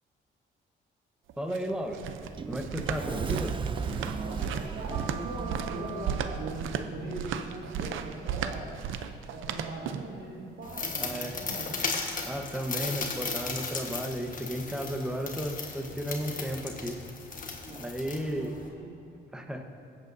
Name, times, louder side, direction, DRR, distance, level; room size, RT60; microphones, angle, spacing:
sound 1, 1.3-10.2, right 8 dB, 80° right, 0.6 m, -35 dB
voice 1, 1.4-2.0 2.5-3.5 11.0-11.3 12.2-17.0 17.7-18.5 19.3-19.6, equal, 5° right, 3 dB, 1.1 m, -34 dB
Sliding door, 1.7-6.5, right 5 dB, 25° right, 0.4 m, -36 dB
voice 2, 2.9-3.3 4.2-8.7 9.2-11.8 17.7-17.9 18.3-18.9, right 2 dB, 65° right, -6 dB, 2.1 m, -40 dB
sound 2, 10.6-18.7, left 4 dB, 45° left, 1.3 m, -36 dB
22.0 x 8.2 x 2.7 m, 2.5 s
cardioid pair, 90°, 20 cm